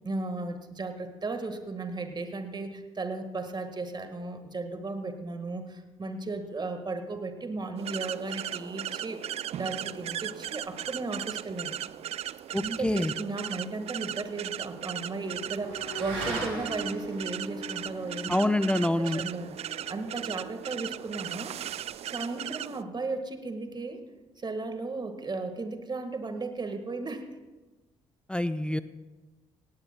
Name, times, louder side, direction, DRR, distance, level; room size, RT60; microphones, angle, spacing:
voice 1, 0.0-9.2 9.6-11.7 12.5-18.5 19.0-21.6 22.0-24.0 24.4-27.3, right 3 dB, 30° right, 7 dB, 1.6 m, -35 dB
sound 1, 7.8-22.8, right 11 dB, 45° right, 0.3 m, -37 dB
voice 2, 12.5-13.1 18.3-19.2 28.3-28.8, left 1 dB, 5° left, 13 dB, 0.5 m, -26 dB
Motorcycle / Accelerating revving vroom, 13.2-21.9, right 2 dB, 80° right, 4.6 m, -42 dB
17.5 x 17.0 x 2.2 m, 1.2 s
hypercardioid pair, 45°, 15 cm